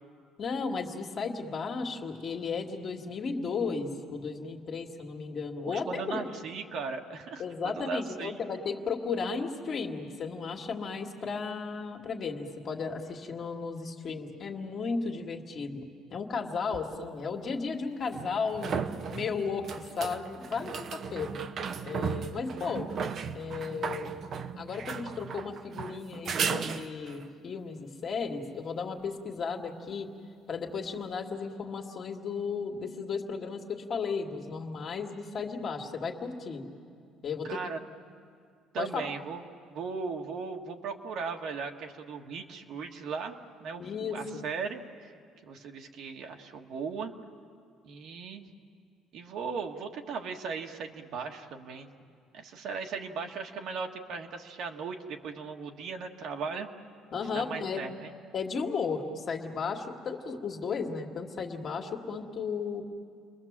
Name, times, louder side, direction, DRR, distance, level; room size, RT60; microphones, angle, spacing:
voice 1, 0.4-6.2 7.4-18.7 19.1-19.7 20.0-21.4 21.8-22.9 23.3-24.1 24.6-30.1 30.5-36.6 37.2-37.6 38.8-39.1 43.8-44.4 57.1-57.9 58.3-62.8, left 5 dB, 40° left, 1 dB, 2.1 m, -34 dB
voice 2, 5.6-8.4 37.4-37.8 38.7-39.4 39.7-45.1 45.4-47.1 47.8-48.5 49.1-51.9 52.3-56.7 57.3-58.1, right 5 dB, 55° right, 3 dB, 1.7 m, -37 dB
sound 1, 16.7-16.8 18.1-27.3 30.7-30.8, right 6 dB, 40° right, 0.9 m, -35 dB
30.0 x 22.0 x 7.4 m, 2.3 s
cardioid pair, 155°, 0 cm